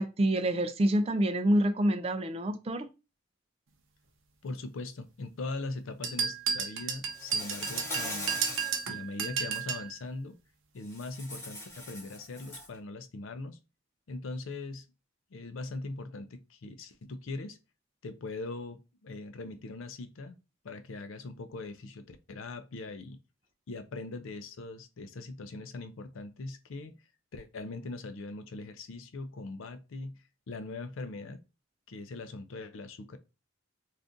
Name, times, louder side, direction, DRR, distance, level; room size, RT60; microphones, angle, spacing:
voice 1, 0.0-2.9, right 1 dB, 30° right, 0.3 m, -27 dB
voice 2, 4.4-8.6 8.9-10.4 10.7-13.6 14.1-14.9 15.3-17.6 18.0-20.4 20.6-23.2 23.7-26.9 27.3-31.4 31.9-33.2, left 3 dB, 75° left, 0.5 m, -41 dB
sound 1, 6.0-9.9, right 7 dB, 75° right, 0.6 m, -32 dB
Insect, 7.1-8.9 9.3-9.6 10.9-12.7, left 1 dB, 15° left, 0.9 m, -40 dB
2.6 x 2.4 x 3.6 m
head